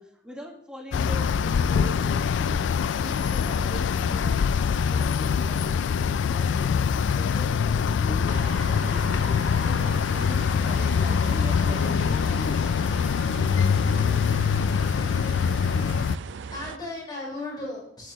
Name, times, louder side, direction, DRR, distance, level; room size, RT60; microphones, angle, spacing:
voice 1, 0.0-2.6 2.9-12.7, equal, 5° right, 0 dB, 1.5 m, -42 dB
sound 1, 0.9-16.2, left 6 dB, 90° left, 0.3 m, -24 dB
sound 2, 8.3-16.8, right 6 dB, 80° right, 0.4 m, -39 dB
voice 2, 16.1-18.1, left 2 dB, 25° left, -5 dB, 4.2 m, -36 dB
12.0 x 9.7 x 3.0 m, 0.70 s
head